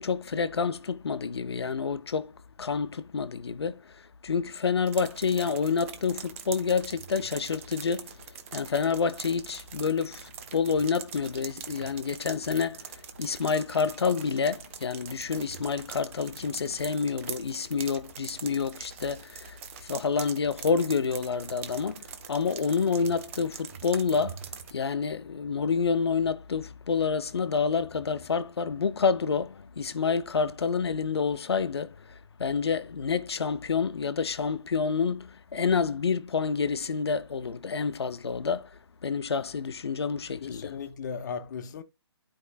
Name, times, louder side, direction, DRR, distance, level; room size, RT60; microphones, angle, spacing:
voice 1, 0.0-2.3 2.6-8.2 8.5-24.4 24.7-40.7, left 5 dB, 70° left, 0.9 m, -28 dB
sound 1, 4.9-24.7, right 8 dB, 30° right, 0.9 m, -43 dB
voice 2, 40.4-41.8, left 6 dB, 40° left, 1.0 m, -36 dB
11.5 x 4.8 x 2.4 m
figure-of-eight pair, 150°, 14 cm